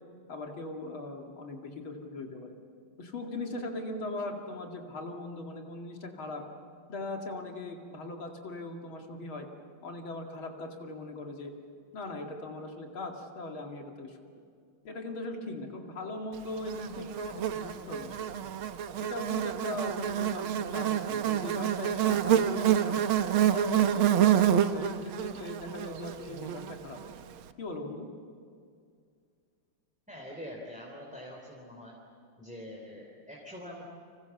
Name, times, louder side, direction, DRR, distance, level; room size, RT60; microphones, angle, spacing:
voice 1, 0.3-2.5 3.0-6.4 6.9-9.5 9.8-11.5 11.9-14.2 14.8-18.3 19.0-23.0 23.5-27.0 27.6-28.1, left 2 dB, 75° left, 2 dB, 3.2 m, -39 dB
Buzz, 16.7-27.1, right 10 dB, 85° right, 1.8 m, -28 dB
voice 2, 30.1-32.0 32.4-33.8, left 1 dB, 5° right, -2 dB, 3.4 m, -44 dB
30.0 x 26.5 x 7.2 m, 2.3 s
omnidirectional pair, 2.3 m